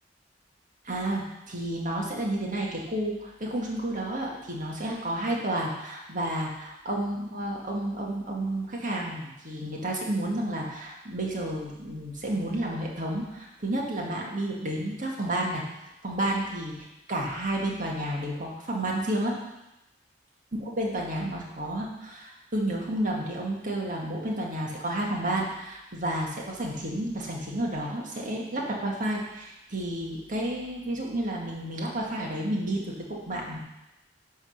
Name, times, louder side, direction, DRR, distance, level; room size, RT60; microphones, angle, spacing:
voice 1, 0.8-15.6 16.0-19.4 20.5-33.6, right 1 dB, 45° right, -2 dB, 1.8 m, -31 dB
10.5 x 3.8 x 6.5 m, 0.92 s
head